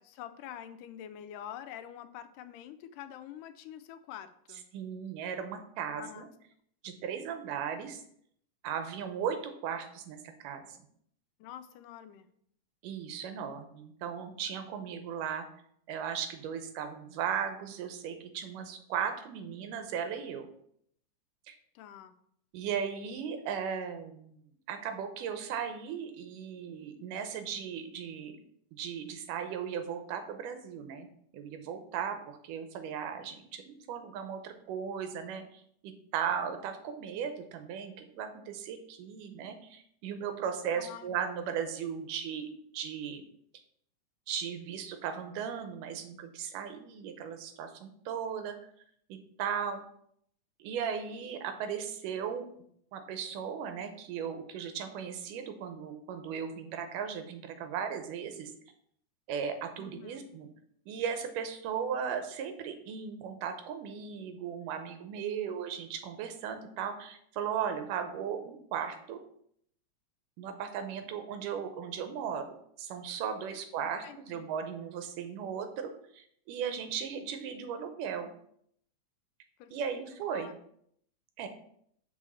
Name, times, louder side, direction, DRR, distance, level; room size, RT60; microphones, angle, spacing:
voice 1, 0.0-4.7 6.0-6.3 11.4-12.3 21.8-22.2 40.7-41.2 59.8-60.3 73.5-74.5 79.6-80.0 80.3-80.5, left 10 dB, 85° left, 11 dB, 2.2 m, -46 dB
voice 2, 4.7-6.3 6.8-8.0 8.6-10.8 12.8-15.5 15.9-20.5 21.5-21.6 22.5-24.4 24.7-28.4 28.7-31.1 31.3-43.2 44.3-48.6 49.1-49.8 50.6-52.5 52.9-58.5 59.3-60.5 60.9-69.2 70.4-78.3 79.7-80.5 81.4-81.5, right 7 dB, 85° right, 7 dB, 2.4 m, -37 dB
6.2 x 4.3 x 6.2 m, 0.68 s
omnidirectional pair, 3.6 m